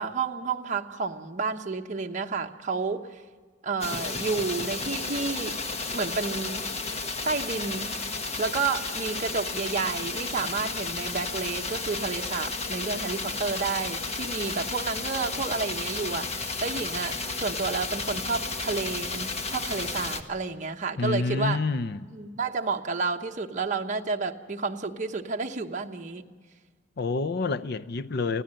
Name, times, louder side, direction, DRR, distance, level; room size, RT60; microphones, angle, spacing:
voice 1, 0.0-3.2 3.6-5.6 5.9-6.6 7.2-7.9 8.4-21.6 22.1-26.2, right 4 dB, 45° right, 1.1 m, -30 dB
sound 1, 3.8-20.2, left 3 dB, 35° left, 1.3 m, -33 dB
voice 2, 21.0-22.1 27.0-28.4, left 3 dB, 60° left, 0.6 m, -28 dB
25.0 x 16.5 x 7.7 m
head